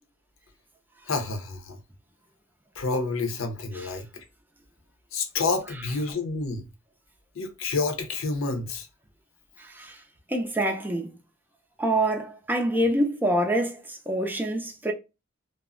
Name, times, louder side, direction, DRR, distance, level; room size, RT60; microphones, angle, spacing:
voice 1, 1.1-1.8 2.8-4.2 5.1-6.6 7.3-8.9, left 3 dB, 70° left, 0.6 m, -29 dB
voice 2, 9.6-10.0 10.3-11.1 11.8-14.9, right 1 dB, 10° right, 0.4 m, -26 dB
2.2 x 2.0 x 3.6 m
head